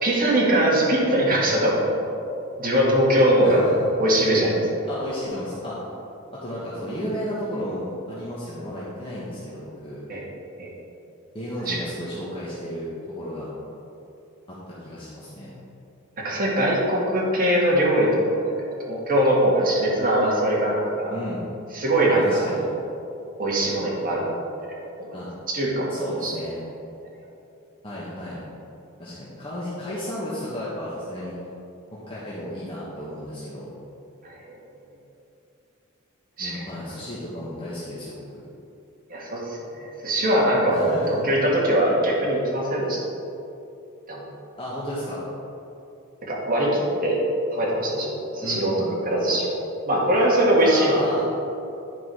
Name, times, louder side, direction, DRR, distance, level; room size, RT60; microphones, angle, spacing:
voice 1, 0.0-1.8 2.6-3.6 4.0-4.7 10.1-10.3 10.6-10.7 11.7-11.8 16.2-18.4 18.8-21.2 21.7-22.5 23.4-24.4 25.0-25.1 25.5-25.9 26.2-26.3 34.2-34.6 36.4-36.6 39.1-41.0 41.2-43.0 44.1-44.2 46.3-47.2 47.5-48.7 49.0-51.1, right 1 dB, 40° right, -4 dB, 1.8 m, -21 dB
voice 2, 3.4-3.9 4.9-5.8 6.3-10.0 11.3-13.5 14.5-15.5 21.1-21.4 22.1-22.7 25.1-25.3 25.9-26.6 27.8-28.4 29.0-31.3 31.9-33.7 36.4-38.4 40.7-41.1 44.6-45.3 48.4-49.0 50.6-51.3, equal, 25° left, -9 dB, 1.3 m, -33 dB
9.7 x 4.8 x 4.8 m, 2.8 s
head